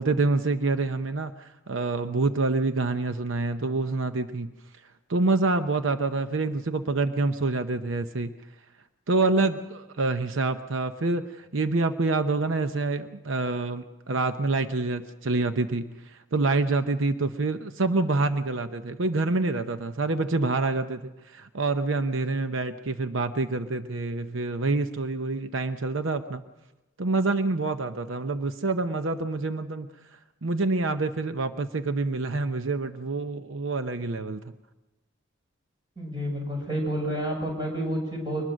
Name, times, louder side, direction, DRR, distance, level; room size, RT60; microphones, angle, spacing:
voice 1, 0.0-4.5 5.1-8.3 9.1-26.4 27.0-29.9 30.4-34.4, right 3 dB, 80° right, 9 dB, 0.8 m, -27 dB
voice 2, 36.0-38.4, equal, 20° right, 0 dB, 6.6 m, -29 dB
23.5 x 20.0 x 6.3 m, 1.1 s
head